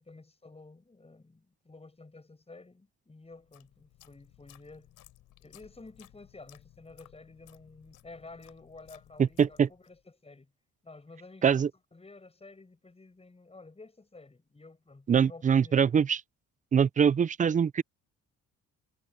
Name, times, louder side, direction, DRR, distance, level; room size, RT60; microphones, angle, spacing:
voice 1, 0.0-4.9 5.4-10.5 10.8-15.9, left 3 dB, 20° left, 7.3 m, -52 dB
sound 1, 3.3-10.0, left 13 dB, 85° left, 3.6 m, -59 dB
voice 2, 9.2-9.7 11.4-11.7 15.1-16.2 16.7-17.8, right 7 dB, 25° right, 0.4 m, -23 dB
cardioid pair, 90°, 30 cm